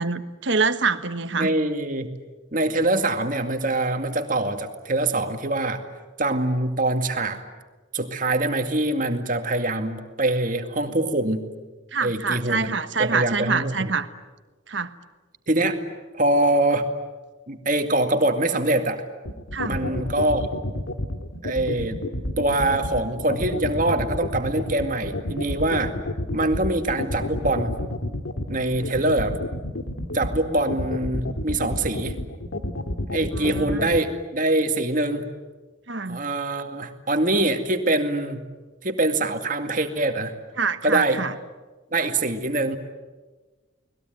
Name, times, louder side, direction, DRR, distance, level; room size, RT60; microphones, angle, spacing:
voice 1, 0.0-1.5 11.9-14.1 14.7-14.9 19.5-19.8 33.4-33.9 35.9-36.2 40.6-41.3, right 4 dB, 65° right, 11 dB, 1.3 m, -26 dB
voice 2, 1.4-2.1 2.5-5.8 6.2-7.4 7.9-11.4 12.0-12.7 13.0-13.9 15.5-15.8 16.1-16.9 17.5-19.0 19.7-20.5 21.4-22.0 22.4-25.9 26.3-27.8 28.5-29.4 30.1-32.2 33.1-35.3 36.1-38.4 38.8-40.3 40.8-41.2 41.9-42.8, right 2 dB, 40° right, 6 dB, 2.2 m, -24 dB
sound 1, 19.3-34.0, left 1 dB, 85° left, 2.2 m, -29 dB
30.0 x 20.5 x 9.3 m, 1.3 s
head